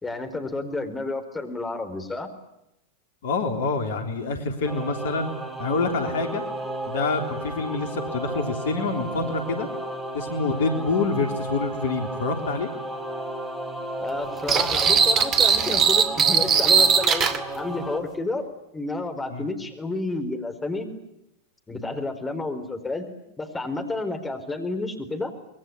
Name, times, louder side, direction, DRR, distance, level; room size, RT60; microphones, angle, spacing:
voice 1, 0.0-2.3 14.0-17.3 17.6-18.5 18.7-20.9 21.7-23.1 23.4-25.3, left 2 dB, 10° left, 6 dB, 4.5 m, -30 dB
voice 2, 3.2-5.3 5.6-6.4 6.9-9.7 10.1-12.7 19.3-19.5, left 3 dB, 60° left, 6 dB, 3.4 m, -26 dB
Singing / Musical instrument, 4.6-18.0, right 1 dB, 15° right, 4.0 m, -34 dB
sound 1, 14.5-17.4, right 6 dB, 30° right, 2.3 m, -19 dB
25.5 x 22.5 x 9.8 m, 0.84 s
figure-of-eight pair, 90°, 0 cm